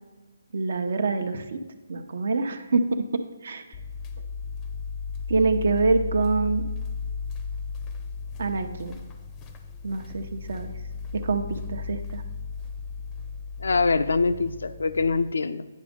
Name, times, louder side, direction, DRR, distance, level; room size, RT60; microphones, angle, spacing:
voice 1, 0.5-1.6 1.9-3.0 3.4-3.6 5.3-6.7 8.4-9.0 9.8-10.7 11.2-12.2, right 3 dB, 65° right, 7 dB, 0.8 m, -25 dB
sound 1, 3.7-15.3, left 5 dB, 20° left, 0.6 m, -35 dB
voice 2, 13.6-15.7, left 4 dB, 75° left, 11 dB, 0.5 m, -24 dB
9.5 x 5.1 x 5.2 m, 1.2 s
hypercardioid pair, 150°, 0 cm